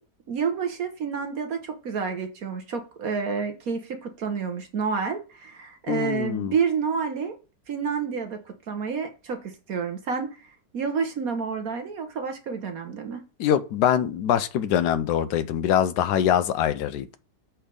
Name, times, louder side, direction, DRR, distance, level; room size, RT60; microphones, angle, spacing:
voice 1, 0.3-7.3 7.7-8.4 8.7-10.3 10.7-13.2, right 6 dB, 60° right, 1.3 m, -29 dB
voice 2, 5.9-6.5 13.4-17.2, left 10 dB, 75° left, 1.2 m, -23 dB
6.6 x 4.4 x 5.2 m
omnidirectional pair, 1.9 m